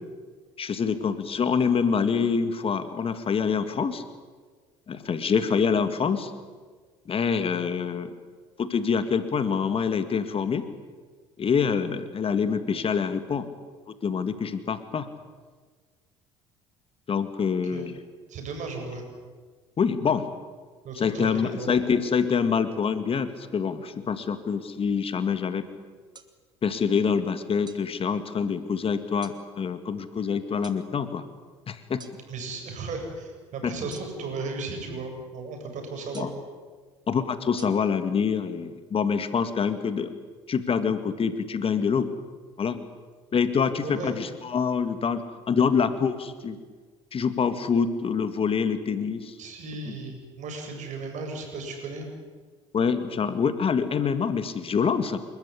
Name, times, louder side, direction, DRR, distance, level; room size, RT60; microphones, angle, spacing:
voice 1, 0.6-4.0 4.9-6.3 7.1-8.1 8.6-10.7 11.4-13.5 14.0-15.1 17.1-18.0 19.8-20.3 21.0-25.7 26.6-31.2 31.7-32.0 33.6-33.7 36.1-36.3 37.1-40.1 40.5-42.1 42.6-42.8 43.3-45.2 45.5-46.6 47.1-49.3 49.9-50.0 52.7-55.2, left 6 dB, 40° left, 10 dB, 2.0 m, -26 dB
voice 2, 18.3-19.1 20.8-22.0 32.3-36.3 43.8-44.1 49.4-52.1, right 3 dB, 55° right, 4 dB, 7.5 m, -35 dB
sound 1, 26.1-26.3 27.7-27.9 29.2-29.4 30.6-30.8 32.0-32.2 33.9-34.4 36.1-36.5 37.6-37.7, right 5 dB, 30° right, 2.6 m, -46 dB
28.5 x 14.0 x 9.9 m, 1.5 s
hypercardioid pair, 65°, 15 cm